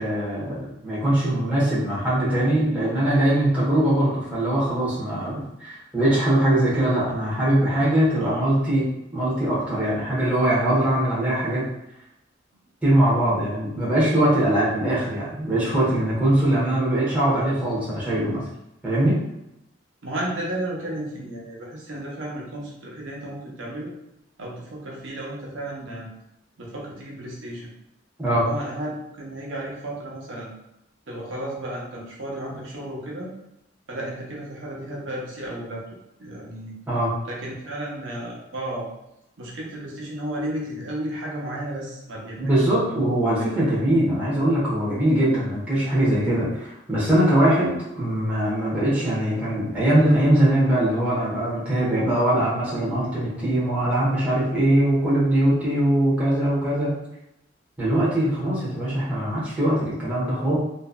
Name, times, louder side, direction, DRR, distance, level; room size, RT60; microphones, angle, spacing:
voice 1, 0.0-8.9 9.1-11.6 12.8-18.4 18.8-19.2 28.2-28.4 36.9-37.1 42.4-57.0 57.8-60.6, right 1 dB, 10° right, -9 dB, 1.0 m, -21 dB
voice 2, 20.0-23.9 24.4-26.1 26.6-27.7 28.2-30.5 31.1-33.3 33.9-35.8 36.2-36.7 37.2-38.9 39.4-42.9, right 1 dB, 85° right, -3 dB, 0.7 m, -33 dB
2.9 x 2.5 x 2.2 m, 0.84 s
head